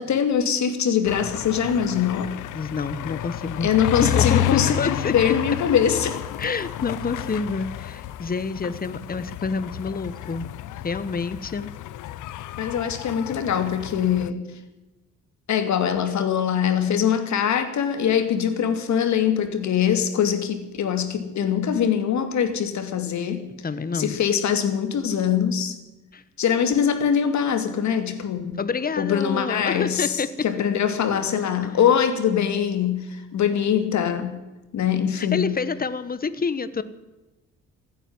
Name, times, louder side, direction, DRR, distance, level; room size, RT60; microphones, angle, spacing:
voice 1, 0.0-2.3 3.6-6.2 12.6-14.4 15.5-23.4 23.9-25.8 26.4-28.5 29.0-34.4 34.7-35.5, left 8 dB, 65° left, 9 dB, 2.6 m, -23 dB
sound 1, 1.0-14.3, left 14 dB, 85° left, 0.8 m, -31 dB
voice 2, 2.5-3.7 4.0-5.3 6.4-10.5 10.8-11.7 23.6-24.2 26.1-26.2 28.6-30.3 35.2-36.8, left 5 dB, 30° left, 14 dB, 1.2 m, -28 dB
16.0 x 9.3 x 9.6 m, 1.1 s
cardioid pair, 90°, 30 cm